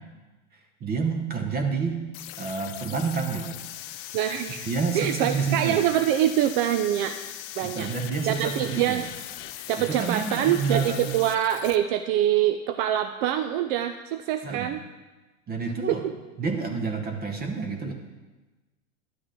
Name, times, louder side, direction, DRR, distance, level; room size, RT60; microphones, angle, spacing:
voice 1, 0.5-2.0 2.4-3.6 4.7-5.8 7.6-9.0 9.8-11.1 14.4-14.7 15.5-16.1 16.4-17.9, right 5 dB, 25° right, 4 dB, 0.9 m, -29 dB
sound 1, 2.1-11.8, left 13 dB, 35° left, 0.5 m, -40 dB
voice 2, 4.1-4.7 4.9-7.2 7.6-7.9 8.3-9.1 9.7-14.8 15.9-16.1, right 11 dB, 45° right, 8 dB, 0.5 m, -25 dB
11.5 x 7.8 x 3.8 m, 1.2 s
hypercardioid pair, 120°, 40 cm